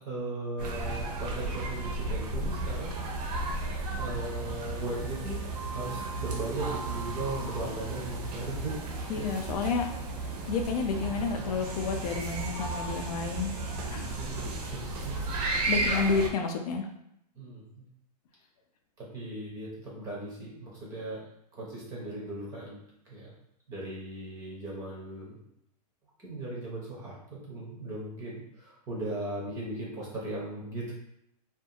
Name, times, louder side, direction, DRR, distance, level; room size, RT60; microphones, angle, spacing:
voice 1, 0.0-2.9 4.0-8.8 9.1-9.5 14.1-15.2 17.4-17.8 19.0-21.2 21.5-22.8 23.1-23.3 23.7-25.4 26.2-30.9, right 2 dB, 15° right, -4 dB, 0.5 m, -38 dB
sound 1, 0.6-16.3, right 2 dB, 75° right, 0.7 m, -34 dB
voice 2, 9.1-9.9 10.5-13.5 13.9-14.2 15.7-16.8, left 5 dB, 65° left, 4 dB, 0.5 m, -30 dB
2.5 x 2.3 x 2.7 m, 0.78 s
supercardioid pair, 170°, 21 cm